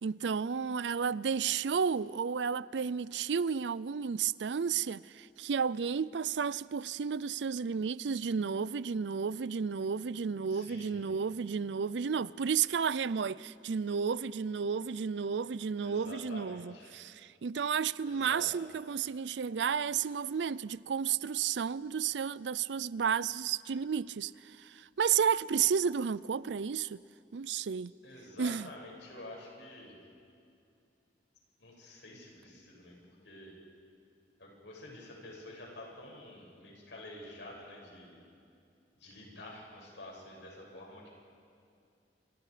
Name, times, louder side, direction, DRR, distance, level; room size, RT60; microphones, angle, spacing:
voice 1, 0.0-27.0 27.3-27.9 28.4-28.7, right 6 dB, 85° right, 0.5 m, -32 dB
voice 2, 10.5-11.0 15.8-16.9 18.0-18.5 28.0-29.9 31.6-33.0 33.2-33.5 34.4-38.2 38.9-41.2, left 1 dB, 85° left, 6.9 m, -48 dB
28.0 x 26.5 x 5.1 m
head